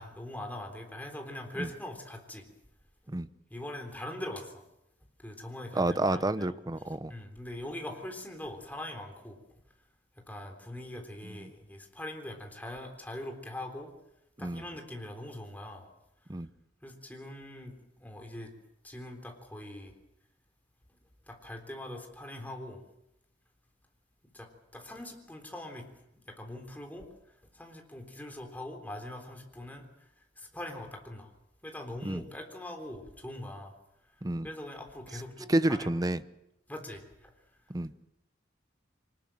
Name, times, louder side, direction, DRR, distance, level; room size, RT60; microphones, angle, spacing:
voice 1, 0.0-2.5 3.5-4.6 5.2-6.3 7.1-9.4 10.3-13.9 14.4-15.9 16.8-18.5 18.8-19.9 21.3-22.8 24.3-27.1 27.5-29.8 30.4-31.3 31.6-33.7 34.4-35.9 36.7-37.3, left 1 dB, 10° left, 3 dB, 3.7 m, -42 dB
voice 2, 5.7-7.1 11.2-11.5 14.4-14.7 16.3-16.5 32.0-32.2 34.2-34.5 35.5-36.2 37.7-37.9, right 1 dB, 20° right, 13 dB, 0.8 m, -29 dB
24.5 x 20.0 x 7.7 m, 0.87 s
head